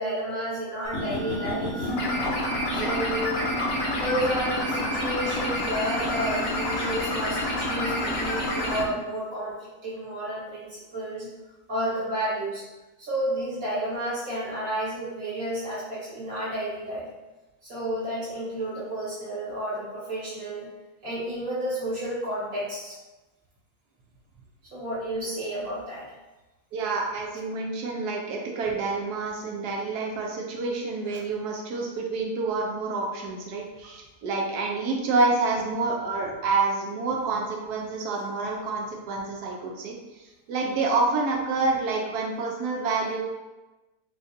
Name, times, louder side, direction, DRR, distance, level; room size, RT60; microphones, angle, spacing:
voice 1, 0.0-1.9 2.7-3.4 3.9-11.3 11.7-12.6 13.0-17.1 17.6-20.7 21.0-23.0 24.7-26.1, right 1 dB, 60° right, -10 dB, 2.1 m, -31 dB
sound 1, 0.8-8.8, left 1 dB, 60° left, 0.7 m, -28 dB
voice 2, 26.7-43.2, right 3 dB, 85° right, 0 dB, 1.3 m, -28 dB
4.9 x 2.4 x 2.6 m, 1.1 s
omnidirectional pair, 1.6 m